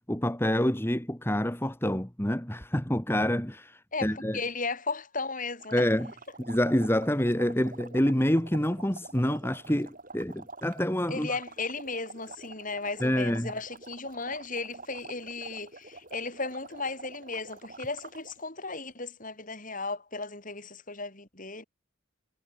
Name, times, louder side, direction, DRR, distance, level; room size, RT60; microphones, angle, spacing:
voice 1, 0.1-4.4 5.7-6.1 6.4-11.3 13.0-13.5, equal, 10° left, 1.7 m, -27 dB
voice 2, 3.9-5.9 11.1-21.6, left 3 dB, 40° left, 5.6 m, -35 dB
sound 1, 5.6-18.4, right 3 dB, 40° right, 6.7 m, -47 dB
head